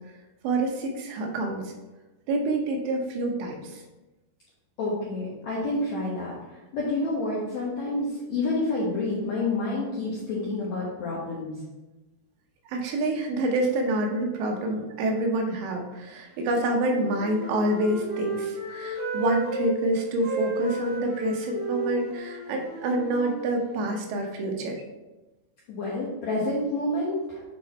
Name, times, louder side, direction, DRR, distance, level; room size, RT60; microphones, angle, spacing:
voice 1, 0.4-1.7 2.3-3.8 12.7-24.8, right 1 dB, 90° right, 2 dB, 3.2 m, -27 dB
voice 2, 4.8-11.5 25.7-27.4, left 2 dB, 75° left, -6 dB, 1.6 m, -29 dB
Wind instrument woodwind instrument, 16.7-19.7 20.2-24.0, right 1 dB, 60° right, 3.0 m, -34 dB
8.2 x 3.8 x 4.2 m, 1.1 s
omnidirectional pair, 4.9 m